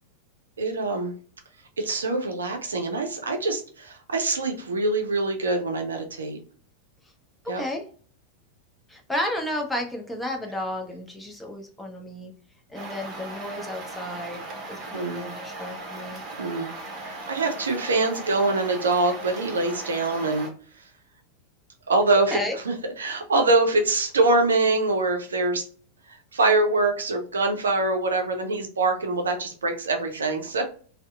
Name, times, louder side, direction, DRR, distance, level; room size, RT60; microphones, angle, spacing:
voice 1, 0.6-1.1 1.8-6.4 7.5-7.6 14.9-15.3 16.4-20.5 21.9-22.4 22.6-25.6 26.1-30.6, right 2 dB, 70° right, 4 dB, 0.5 m, -24 dB
voice 2, 7.4-7.9 8.9-12.3 12.7-14.4 14.7-16.2 22.3-22.6, left 1 dB, 5° left, 2 dB, 0.6 m, -32 dB
sound 1, 12.7-20.5, right 2 dB, 30° right, 0.8 m, -38 dB
2.7 x 2.0 x 2.3 m, 0.43 s
figure-of-eight pair, 90°, 0 cm